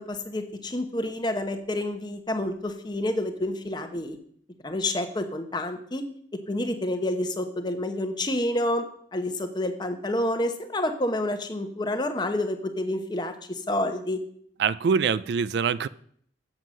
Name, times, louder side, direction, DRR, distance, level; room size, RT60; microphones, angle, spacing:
voice 1, 0.0-4.2 4.6-6.0 6.5-8.8 9.1-14.2, left 1 dB, 25° left, 0.9 m, -29 dB
voice 2, 14.6-15.9, right 6 dB, 60° right, 0.3 m, -24 dB
7.8 x 7.3 x 6.2 m
head